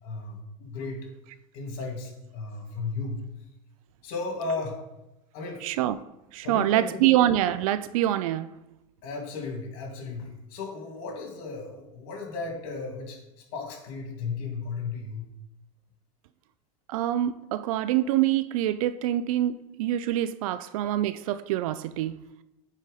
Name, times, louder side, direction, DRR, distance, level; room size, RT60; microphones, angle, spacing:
voice 1, 0.0-1.1 1.5-3.2 4.0-4.8 5.3-5.7 6.4-7.1 9.0-13.2 13.5-15.3, left 4 dB, 70° left, 2.3 m, -35 dB
voice 2, 5.6-6.0 6.3-8.5 16.9-22.2, right 13 dB, 80° right, 0.4 m, -25 dB
8.9 x 4.1 x 4.1 m
supercardioid pair, 110°, 17 cm